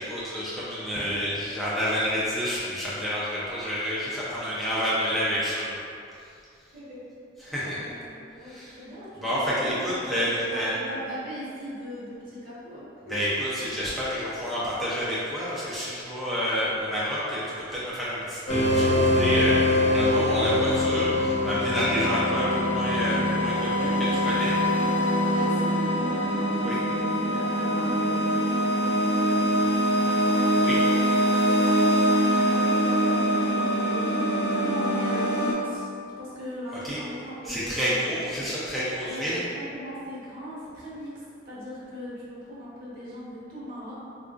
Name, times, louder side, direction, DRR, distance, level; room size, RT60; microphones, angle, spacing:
voice 1, 0.0-5.8 7.4-7.8 8.4-8.8 9.2-10.7 13.1-23.9 24.3-24.5 26.6-26.8 30.6-30.8 36.8-37.0 37.4-39.4, equal, ahead, -10 dB, 0.4 m, -29 dB
voice 2, 0.9-1.5 6.7-7.1 7.4-8.1 8.4-10.0 10.4-13.1 20.0-20.8 21.7-22.1 23.7-31.1 31.4-35.9 36.2-38.1 39.0-41.1 41.4-43.9, equal, 50° right, -9 dB, 1.0 m, -39 dB
sound 1, 18.5-35.5, equal, 70° left, 0.9 m, -23 dB
3.9 x 2.5 x 2.3 m, 2.5 s
head